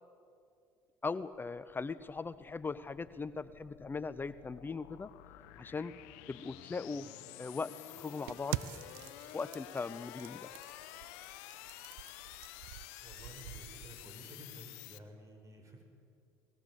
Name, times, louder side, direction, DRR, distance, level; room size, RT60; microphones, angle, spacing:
voice 1, 1.0-5.1 5.6-5.9 6.3-7.1 7.4-8.6 9.3-10.5, left 4 dB, 25° left, 14 dB, 0.7 m, -39 dB
sound 1, 1.7-15.0, left 15 dB, 85° left, 1.0 m, -51 dB
sound 2, 8.3-14.1, right 17 dB, 85° right, 0.5 m, -45 dB
voice 2, 13.0-15.8, equal, 40° right, 4 dB, 6.2 m, -53 dB
21.0 x 20.0 x 8.2 m, 2.4 s
supercardioid pair, 75°, 8 cm